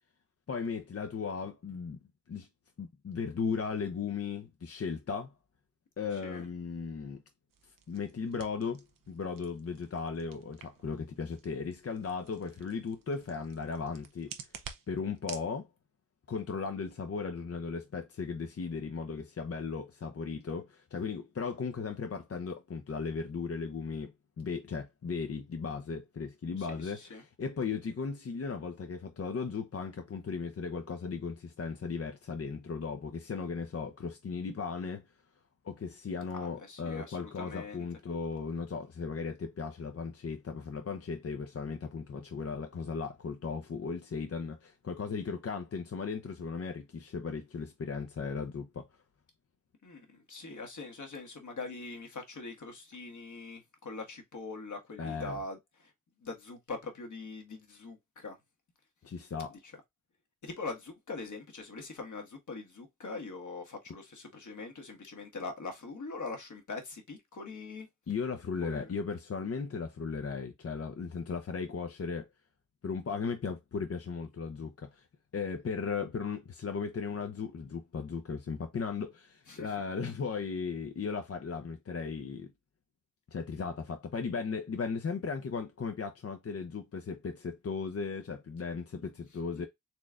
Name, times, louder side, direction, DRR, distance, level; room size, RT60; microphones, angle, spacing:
voice 1, 0.5-2.0 2.3-2.5 2.8-5.3 6.0-7.2 7.6-14.3 14.9-15.7 16.3-35.0 35.6-48.9 55.0-55.4 59.0-59.6 68.1-72.3 72.8-75.1 75.3-82.5 83.3-89.7, left 5 dB, 45° left, 0.7 m, -36 dB
voice 2, 6.1-6.5 26.6-27.2 36.3-37.8 49.8-55.9 56.2-58.4 60.4-67.9 68.6-68.9 79.5-79.7 89.5-89.7, left 3 dB, 60° left, 1.4 m, -42 dB
sound 1, 7.5-15.5, right 7 dB, 80° right, 0.8 m, -51 dB
4.3 x 3.2 x 2.4 m
cardioid pair, 50°, 33 cm